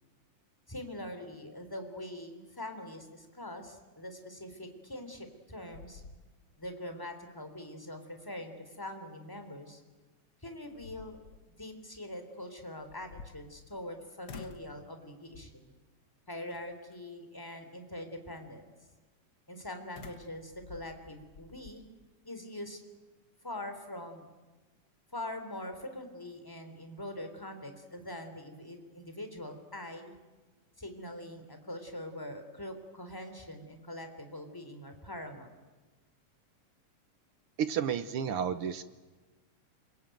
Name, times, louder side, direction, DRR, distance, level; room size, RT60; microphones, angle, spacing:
voice 1, 0.7-6.0 6.6-9.8 10.4-11.2 11.6-15.7 16.3-18.7 19.5-21.8 22.2-22.8 23.4-24.2 25.1-30.1 30.8-35.5, left 1 dB, 5° left, 6 dB, 3.2 m, -43 dB
sound 1, 5.1-5.4 5.7-6.7 7.1-7.2 9.9-10.0 10.5-11.5 12.8-13.9 14.3-14.8 15.3-15.7 16.5-17.0 20.0-21.8, left 5 dB, 60° left, 1.1 m, -50 dB
voice 2, 37.6-38.8, right 8 dB, 65° right, 11 dB, 1.4 m, -31 dB
27.0 x 22.5 x 9.2 m, 1.2 s
omnidirectional pair, 3.7 m